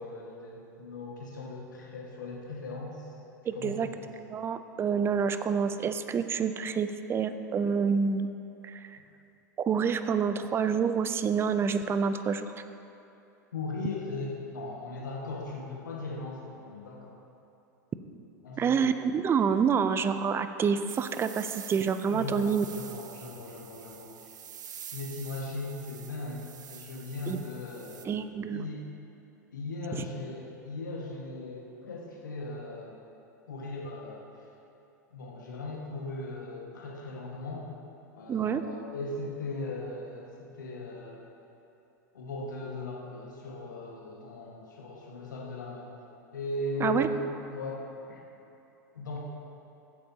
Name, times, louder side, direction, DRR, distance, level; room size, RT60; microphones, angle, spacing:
voice 1, 0.0-3.1 3.5-4.1 13.5-17.2 18.4-19.0 22.1-24.3 24.9-28.1 28.5-28.9 29.5-33.0 33.5-34.3 35.1-37.7 38.1-41.3 42.1-45.9 46.3-47.2 47.5-48.2 48.9-49.2, left 2 dB, 85° left, -3 dB, 1.6 m, -38 dB
voice 2, 3.5-3.9 4.2-8.3 8.6-9.0 9.6-12.5 18.6-22.6 27.3-27.4 28.1-28.7 38.3-38.6 46.8-47.1, right 6 dB, 25° right, 10 dB, 0.5 m, -28 dB
sound 1, 20.9-28.1, right 9 dB, 80° right, 0.6 m, -47 dB
16.0 x 8.6 x 2.8 m, 3.0 s
hypercardioid pair, 95°, 10 cm